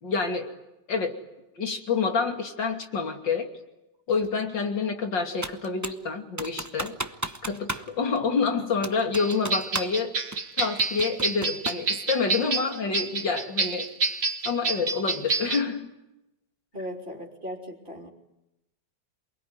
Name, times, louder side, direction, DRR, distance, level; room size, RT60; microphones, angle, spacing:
voice 1, 0.0-0.5 0.9-1.2 1.6-3.5 4.1-7.0 7.4-10.1 10.6-13.9 14.5-15.9, left 5 dB, 80° left, 5 dB, 3.5 m, -27 dB
Computer keyboard, 5.4-6.0 6.4-8.2 8.8-10.0 10.3-11.9, right 2 dB, 15° right, 0.7 m, -34 dB
sound 1, 9.1-15.6, right 4 dB, 50° right, 2.1 m, -28 dB
voice 2, 16.7-18.1, equal, 30° right, -2 dB, 3.7 m, -37 dB
28.0 x 21.0 x 9.6 m, 0.94 s
omnidirectional pair, 1.9 m